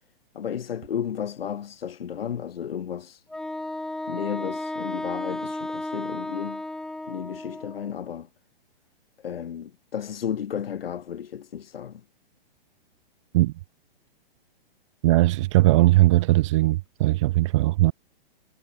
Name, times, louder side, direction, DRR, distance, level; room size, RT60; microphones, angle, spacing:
voice 1, 0.3-3.2 4.1-6.6 7.1-8.3 9.2-12.0, left 8 dB, 75° left, 2.7 m, -33 dB
Wind instrument woodwind instrument, 3.3-7.9, left 1 dB, ahead, 1.6 m, -33 dB
voice 2, 15.0-17.9, right 18 dB, 30° right, 1.6 m, -19 dB
hypercardioid pair, 170°, 30 cm